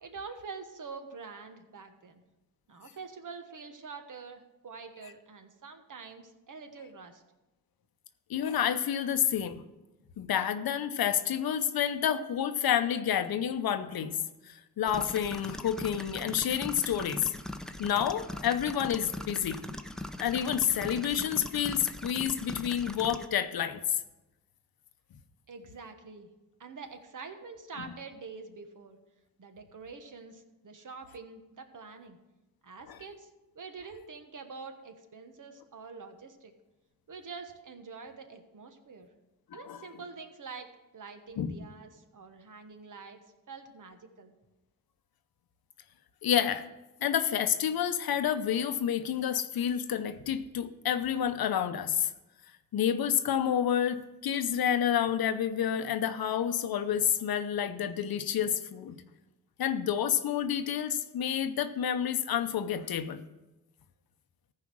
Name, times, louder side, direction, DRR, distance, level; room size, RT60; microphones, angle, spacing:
voice 1, 0.0-2.2 2.7-7.2 25.5-26.3 26.6-29.0 29.4-32.2 32.6-33.3 33.5-36.5 37.1-39.1 39.5-40.7 40.9-43.2 43.5-44.3, right 4 dB, 60° right, 7 dB, 1.3 m, -46 dB
voice 2, 8.3-9.6 10.2-14.2 14.5-17.3 17.8-19.6 20.2-23.8 39.5-39.8 41.4-41.6 46.2-46.6 47.0-52.1 52.7-59.0 59.6-63.2, left 9 dB, 90° left, 10 dB, 0.8 m, -29 dB
sound 1, 14.9-23.3, left 1 dB, ahead, 0.7 m, -41 dB
14.5 x 4.9 x 6.2 m, 1.0 s
cardioid pair, 70°, 35 cm